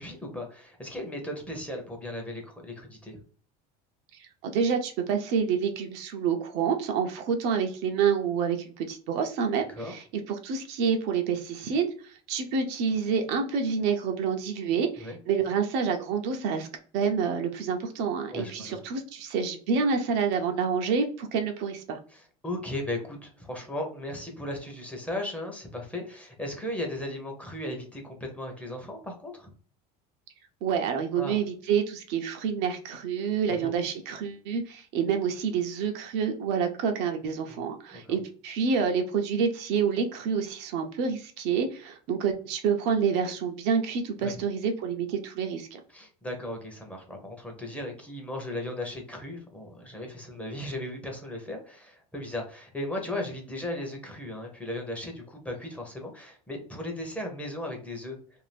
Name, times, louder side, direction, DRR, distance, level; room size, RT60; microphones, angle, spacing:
voice 1, 0.0-3.2 9.7-9.9 15.0-15.2 18.3-18.8 22.1-29.5 31.2-31.4 33.6-33.7 37.5-37.6 37.9-38.2 44.2-44.4 45.9-58.2, left 1 dB, 5° left, 1 dB, 0.7 m, -36 dB
voice 2, 4.2-16.7 16.9-22.0 30.6-45.8, right 6 dB, 60° right, 4 dB, 0.6 m, -28 dB
2.6 x 2.4 x 3.3 m, 0.43 s
cardioid pair, 145°, 19 cm